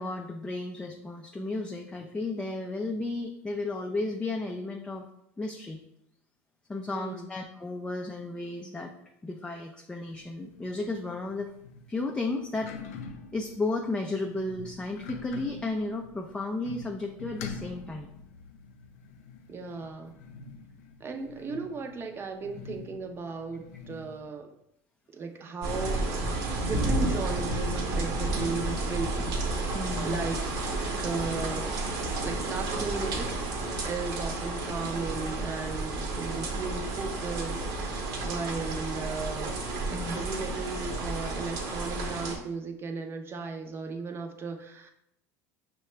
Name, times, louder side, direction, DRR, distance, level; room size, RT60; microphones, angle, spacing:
voice 1, 0.0-5.0 5.4-5.8 6.7-8.9 9.2-11.5 11.9-12.7 13.3-18.1 29.7-30.2 39.9-40.2, left 2 dB, 10° left, 2 dB, 0.4 m, -33 dB
voice 2, 6.9-7.3 19.5-20.2 21.0-24.5 25.1-29.6 30.0-30.4 31.0-31.8 32.2-33.3 33.8-39.6 39.9-44.9, right 4 dB, 30° right, 4 dB, 0.6 m, -36 dB
sound 1, 10.1-24.3, left 5 dB, 85° left, 0.4 m, -46 dB
sound 2, 25.6-42.4, right 2 dB, 60° right, 0.9 m, -31 dB
5.5 x 2.2 x 3.1 m, 0.79 s
hypercardioid pair, 90°, 8 cm